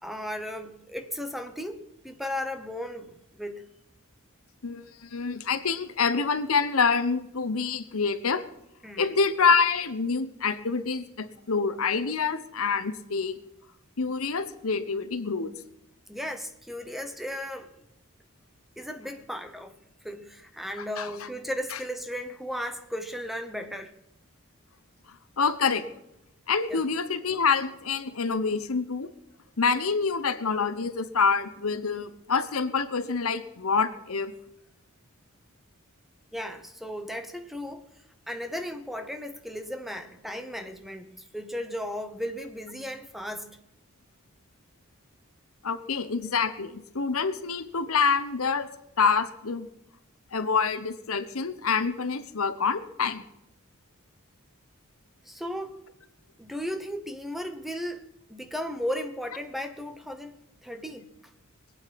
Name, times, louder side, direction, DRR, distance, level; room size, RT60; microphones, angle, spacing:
voice 1, 0.0-3.6 8.8-9.2 16.1-17.7 18.8-19.7 20.0-23.9 26.7-26.8 36.3-37.9 38.3-43.6 55.2-55.8 56.4-58.0 58.3-61.1, equal, ahead, 1.0 m, -35 dB
voice 2, 4.6-8.4 9.0-13.4 14.0-15.5 21.0-21.1 25.4-25.8 26.5-29.1 29.6-34.3 45.6-48.7 49.0-49.7 50.3-53.2, left 5 dB, 75° left, 1.0 m, -26 dB
22.0 x 8.9 x 5.9 m
head